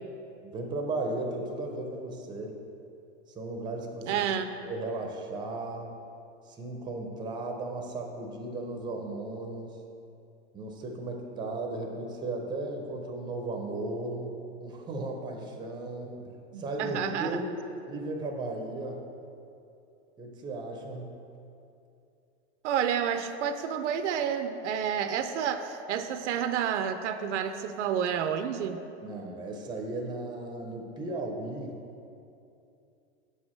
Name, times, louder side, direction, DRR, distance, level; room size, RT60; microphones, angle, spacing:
voice 1, 0.4-2.6 3.3-4.3 4.6-5.9 6.5-9.7 10.5-14.3 14.6-16.3 16.6-17.5 17.9-19.0 20.2-21.2 29.0-31.8, right 2 dB, 15° right, 2 dB, 0.5 m, -35 dB
voice 2, 4.0-4.5 16.5-17.4 22.6-28.8, right 8 dB, 90° right, 9 dB, 0.6 m, -30 dB
6.9 x 4.8 x 4.2 m, 2.7 s
supercardioid pair, 140°, 34 cm